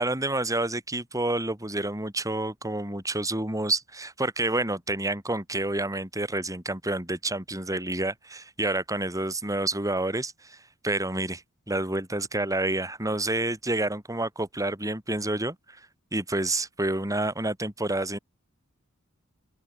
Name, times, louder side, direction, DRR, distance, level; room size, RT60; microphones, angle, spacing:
voice 1, 0.0-10.6 10.8-11.4 11.7-15.8 16.1-18.2, right 2 dB, 15° right, 7.0 m, -29 dB
open air
head